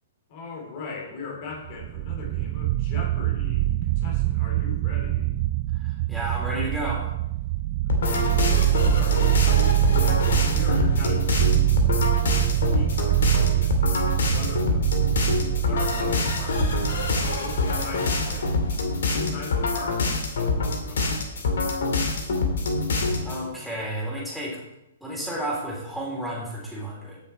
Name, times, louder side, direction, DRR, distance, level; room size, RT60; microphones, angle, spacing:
voice 1, 0.3-5.4 7.8-9.5 10.5-11.9 12.5-13.9 14.2-15.1 15.5-16.8 17.2-18.6 19.1-21.3, left 4 dB, 45° left, 0 dB, 3.3 m, -39 dB
sound 1, 1.6-19.0, right 16 dB, 35° right, 0.4 m, -24 dB
voice 2, 5.7-7.0 23.2-24.6 25.0-27.2, right 1 dB, ahead, -4 dB, 3.7 m, -32 dB
sound 2, 7.9-23.4, left 3 dB, 65° left, 2.3 m, -25 dB
16.0 x 6.5 x 4.5 m, 0.91 s
figure-of-eight pair, 120°, 0 cm